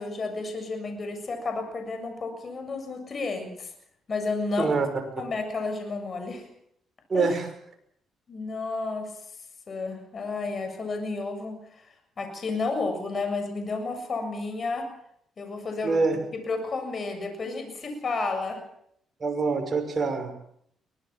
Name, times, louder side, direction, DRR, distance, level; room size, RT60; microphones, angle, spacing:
voice 1, 0.0-3.7 4.1-4.8 5.2-6.5 7.1-7.3 8.3-9.1 9.7-11.8 12.2-14.9 15.4-16.0 16.3-18.6, left 3 dB, 40° left, 6 dB, 7.2 m, -31 dB
voice 2, 7.1-7.5 15.8-16.2 19.2-20.3, right 4 dB, 40° right, 5 dB, 6.2 m, -25 dB
23.5 x 19.5 x 7.5 m, 0.70 s
cardioid pair, 90°, 0 cm